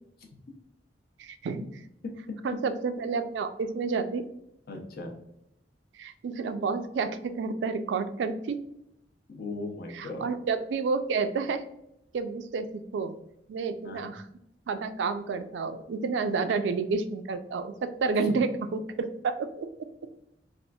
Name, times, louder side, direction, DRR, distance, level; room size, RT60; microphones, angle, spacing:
voice 1, 1.2-1.6 2.4-4.2 6.0-8.6 9.9-11.6 12.1-13.1 13.5-14.2 14.7-19.9, right 4 dB, 85° right, 10 dB, 0.3 m, -30 dB
voice 2, 2.0-2.6 4.7-5.1 9.3-10.3 13.8-14.1 18.2-18.4, left 2 dB, 60° left, 2 dB, 0.6 m, -37 dB
4.2 x 2.4 x 2.2 m, 0.80 s
head